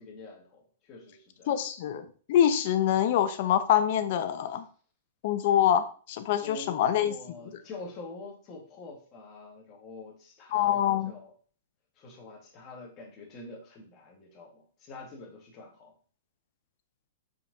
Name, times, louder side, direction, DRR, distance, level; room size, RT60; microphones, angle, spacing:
voice 1, 0.0-1.6 6.4-11.3 12.0-15.9, left 3 dB, 35° left, 1 dB, 2.1 m, -46 dB
voice 2, 1.5-4.6 5.2-5.8 6.1-7.1 10.5-11.1, left 10 dB, 55° left, 11 dB, 0.9 m, -25 dB
5.6 x 4.8 x 4.2 m, 0.43 s
hypercardioid pair, 125°, 0 cm